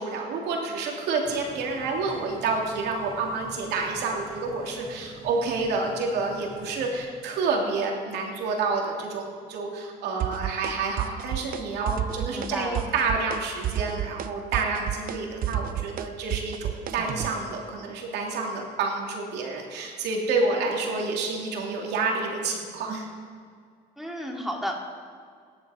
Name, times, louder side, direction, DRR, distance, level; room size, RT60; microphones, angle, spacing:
voice 1, 0.0-23.1, right 4 dB, 80° right, 0 dB, 2.7 m, -29 dB
sound 1, 1.2-7.0, equal, 15° right, 5.1 m, -46 dB
sound 2, 10.2-10.7 11.0-11.6 11.9-12.5 12.7-13.4 13.6-17.3, right 11 dB, 60° right, 0.8 m, -30 dB
voice 2, 12.3-12.9 24.0-24.8, equal, ahead, -1 dB, 2.8 m, -32 dB
24.5 x 10.5 x 5.0 m, 2.1 s
cardioid pair, 110°, 17 cm